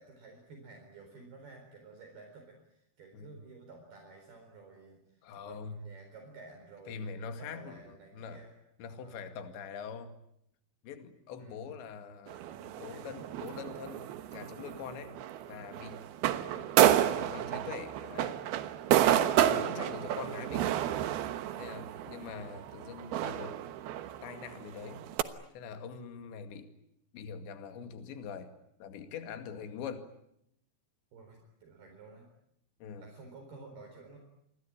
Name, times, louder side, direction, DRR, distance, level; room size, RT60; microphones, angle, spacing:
voice 1, 0.0-8.6 8.9-9.2 11.3-11.9 12.5-13.4 21.9-22.4 29.5-29.7 31.1-32.3 33.0-34.2, right 3 dB, 50° right, 3 dB, 5.9 m, -53 dB
voice 2, 5.2-5.8 6.9-8.4 8.8-10.2 10.8-12.5 12.8-15.2 15.5-16.1 16.5-16.7 17.0-18.4 19.4-20.8 21.6-23.6 24.2-25.1 25.5-26.7 27.1-28.5 28.8-30.1 32.8-33.1, left 6 dB, 65° left, 8 dB, 4.3 m, -43 dB
sound 1, 12.3-25.2, right 11 dB, 70° right, 2.5 m, -30 dB
28.5 x 22.5 x 8.8 m, 0.75 s
omnidirectional pair, 5.7 m